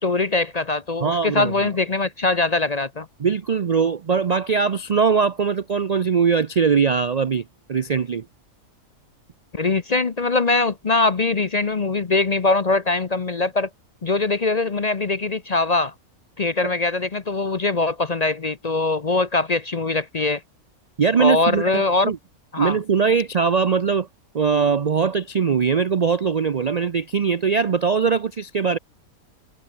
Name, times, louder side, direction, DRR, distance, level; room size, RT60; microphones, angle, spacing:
voice 1, 0.0-3.1 9.5-13.7 14.0-15.9 16.4-20.4 21.2-22.1 22.5-22.8, left 3 dB, 35° left, 0.7 m, -22 dB
voice 2, 1.0-1.7 3.2-7.4 7.7-8.2 16.6-16.7 21.0-22.2 22.6-24.1 24.3-28.8, right 6 dB, 50° right, 0.4 m, -21 dB
omnidirectional pair, 1.5 m